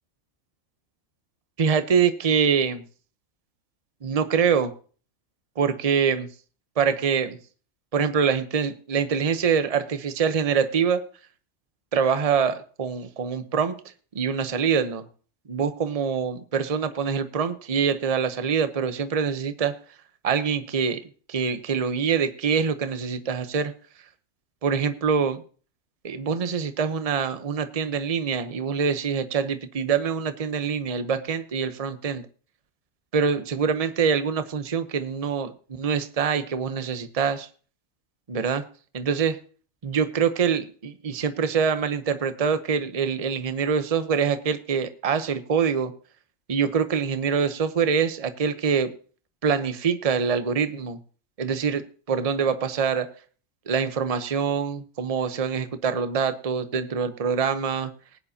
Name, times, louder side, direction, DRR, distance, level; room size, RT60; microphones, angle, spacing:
voice 1, 1.6-2.8 4.0-4.7 5.6-6.3 6.8-7.4 7.9-11.0 11.9-13.8 14.1-15.1 15.5-19.8 20.2-21.0 21.3-23.7 24.6-25.4 26.0-32.2 33.1-35.5 35.8-37.5 38.3-38.6 38.9-39.4 39.8-45.9 46.5-48.9 49.4-51.0 51.4-53.1 53.7-57.9, right 6 dB, 30° right, 10 dB, 0.9 m, -24 dB
19.5 x 9.6 x 2.8 m, 0.41 s
omnidirectional pair, 1.4 m